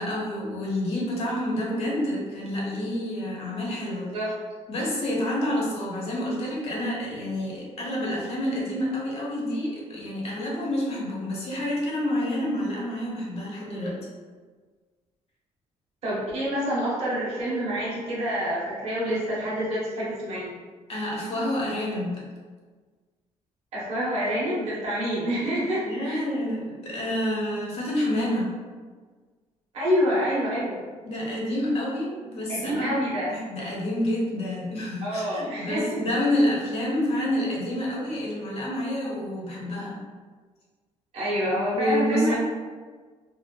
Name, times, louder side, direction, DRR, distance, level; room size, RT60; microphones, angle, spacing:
voice 1, 0.0-4.1 4.7-14.1 20.9-22.2 25.8-28.5 31.0-32.9 33.3-40.0 41.7-42.4, left 1 dB, 55° left, -4 dB, 0.9 m, -28 dB
voice 2, 16.0-20.5 23.7-26.2 29.7-30.8 32.5-33.3 35.0-36.0 41.1-42.4, equal, 55° right, -8 dB, 1.1 m, -27 dB
2.8 x 2.3 x 2.2 m, 1.5 s
cardioid pair, 110°, 13 cm